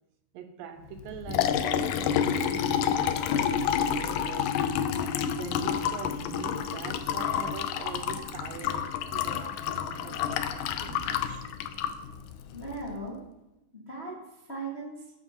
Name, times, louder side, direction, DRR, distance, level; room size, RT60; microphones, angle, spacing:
voice 1, 0.3-11.5, right 8 dB, 80° right, 2.0 m, -43 dB
Liquid, 1.0-12.9, left 8 dB, 85° left, 1.9 m, -29 dB
voice 2, 12.5-13.2 13.7-15.1, right 2 dB, 40° left, 0.8 m, -38 dB
13.5 x 9.6 x 2.9 m
omnidirectional pair, 4.4 m